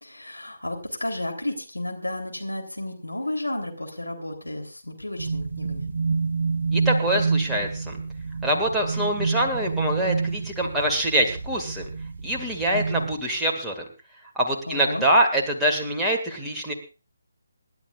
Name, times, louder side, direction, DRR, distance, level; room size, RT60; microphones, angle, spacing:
voice 1, 0.0-5.9 14.7-15.0, left 1 dB, 80° left, 3 dB, 3.5 m, -32 dB
sound 1, 5.2-13.2, right 4 dB, 50° right, 1.3 m, -28 dB
voice 2, 6.7-7.9 8.4-11.8 12.2-13.8 14.4-16.7, right 1 dB, ahead, -4 dB, 2.1 m, -24 dB
26.5 x 12.0 x 2.5 m, 0.32 s
figure-of-eight pair, 145°, 0 cm